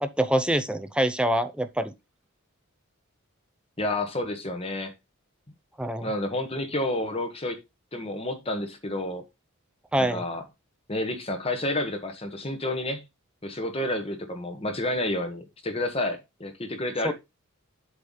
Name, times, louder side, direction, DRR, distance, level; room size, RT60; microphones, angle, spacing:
voice 1, 0.0-1.9 5.8-6.1 9.9-10.2 17.0-17.1, right 1 dB, 5° right, 0.6 m, -25 dB
voice 2, 3.8-4.9 6.0-7.6 7.9-9.2 10.0-10.4 10.9-13.0 13.4-17.1, left 1 dB, 25° left, 1.4 m, -30 dB
8.0 x 3.3 x 5.5 m
head